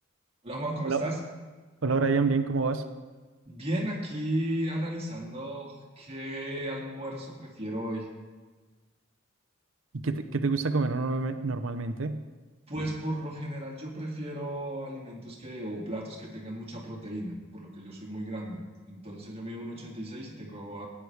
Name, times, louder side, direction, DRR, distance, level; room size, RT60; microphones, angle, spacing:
voice 1, 0.4-1.2 3.5-8.1 12.7-18.6 18.9-20.9, right 1 dB, 30° right, -1 dB, 2.2 m, -35 dB
voice 2, 1.8-2.9 9.9-12.2, right 4 dB, 80° right, 8 dB, 0.7 m, -27 dB
17.5 x 9.9 x 3.3 m, 1.3 s
head